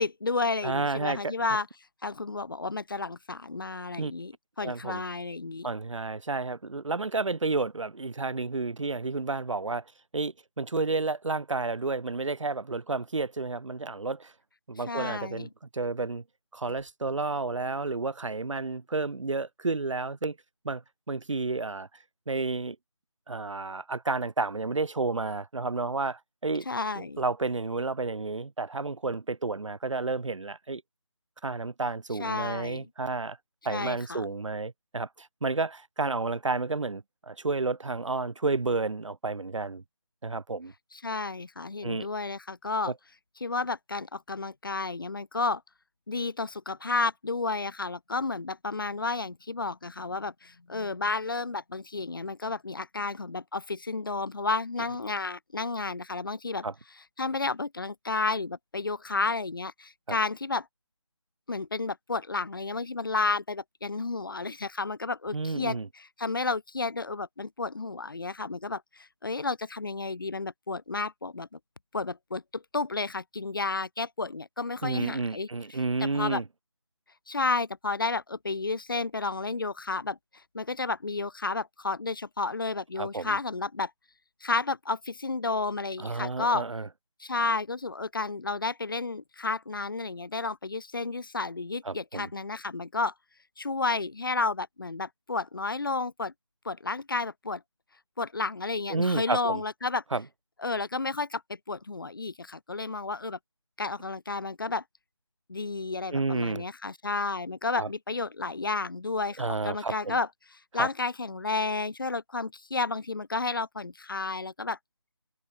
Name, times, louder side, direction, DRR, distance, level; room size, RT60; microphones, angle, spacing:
voice 1, 0.0-1.7 2.0-4.3 4.6-5.7 14.9-15.5 26.7-27.2 32.2-32.9 33.7-34.3 40.9-42.9 43.4-45.6 46.1-56.7 57.2-60.7 61.5-71.6 71.9-75.5 76.0-76.4 77.3-80.2 80.5-83.9 84.4-86.6 87.2-93.1 93.6-96.3 96.6-97.6 98.2-100.0 100.6-103.4 103.8-104.8 105.5-110.3 110.7-114.8, left 3 dB, 45° left, 0.9 m, -31 dB
voice 2, 0.6-1.3 4.0-4.1 4.6-5.0 5.6-14.3 14.7-16.2 16.5-20.4 20.6-21.9 22.3-22.8 23.3-26.7 27.0-30.8 31.4-33.4 33.6-39.8 40.2-40.7 41.8-42.1 42.8-42.9 56.6-56.7 60.1-60.2 65.3-65.9 74.8-76.4 83.0-83.4 86.0-86.9 91.8-92.3 98.9-99.6 100.1-100.2 106.1-106.7 107.8-107.9 109.4-110.2 110.7-110.9, right 3 dB, 85° right, 1.0 m, -31 dB
figure-of-eight pair, 175°, 16 cm